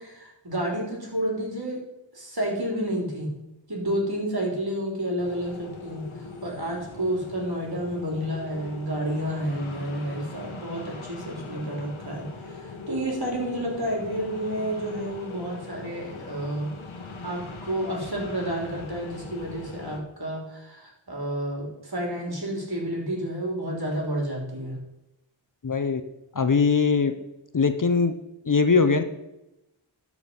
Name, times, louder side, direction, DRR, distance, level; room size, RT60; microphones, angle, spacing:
voice 1, 0.0-1.8 2.1-3.3 3.7-6.0 6.4-16.7 17.2-24.8, right 1 dB, 50° right, -1 dB, 3.5 m, -30 dB
late afternoon wind, 5.2-20.0, left 3 dB, 90° left, 1.2 m, -41 dB
voice 2, 25.6-26.0 26.3-27.1 27.5-28.1 28.5-29.0, left 5 dB, 40° left, 9 dB, 0.8 m, -21 dB
12.5 x 4.9 x 5.4 m, 0.93 s
wide cardioid pair, 40°, 47 cm